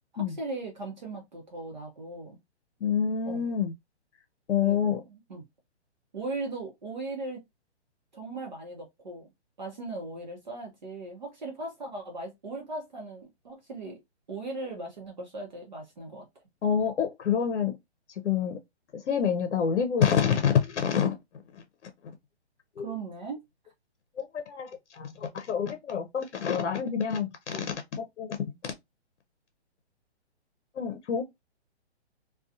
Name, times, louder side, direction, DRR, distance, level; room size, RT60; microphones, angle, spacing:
voice 1, 0.1-2.4 3.2-3.4 4.6-5.4 6.1-7.4 8.1-9.3 9.6-14.0 14.3-16.3 22.8-23.4, right 2 dB, 40° right, 0.8 m, -38 dB
voice 2, 2.8-3.7 4.5-5.0 16.6-17.8 18.2-18.6 18.9-21.2 21.5-21.9 22.8-22.9 24.2-28.4 28.6-28.7 30.8-31.2, left 7 dB, 90° left, 0.7 m, -27 dB
2.4 x 2.3 x 2.6 m
hypercardioid pair, 175°, 34 cm